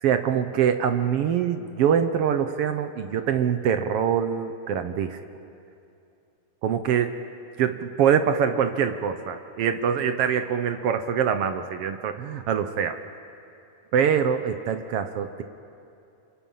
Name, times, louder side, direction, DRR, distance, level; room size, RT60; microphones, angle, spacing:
voice 1, 0.0-5.2 6.6-7.1 7.6-13.0 13.9-15.4, right 8 dB, 70° right, 9 dB, 1.5 m, -24 dB
28.5 x 27.5 x 5.6 m, 2.7 s
omnidirectional pair, 3.4 m